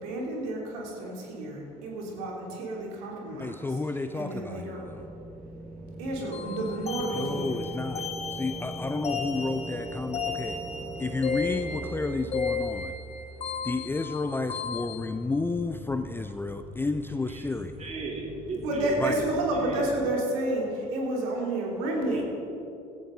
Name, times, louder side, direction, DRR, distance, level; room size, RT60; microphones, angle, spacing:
voice 1, 0.0-3.7 3.9-5.0 6.0-7.7 10.6-10.7 18.6-22.2, right 1 dB, 65° right, -1 dB, 2.9 m, -31 dB
voice 2, 3.4-5.0 7.1-10.6 11.0-13.0 13.6-17.9 19.0-19.2, left 3 dB, 10° left, 9 dB, 0.5 m, -31 dB
sound 1, 4.8-20.2, right 2 dB, 5° right, 1.0 m, -42 dB
sound 2, 6.3-15.0, left 5 dB, 30° left, 1.4 m, -35 dB
voice 3, 17.8-19.1 19.5-19.9 22.1-22.2, right 3 dB, 35° right, -1 dB, 3.1 m, -36 dB
16.0 x 14.5 x 3.8 m, 2.9 s
figure-of-eight pair, 60°, 20 cm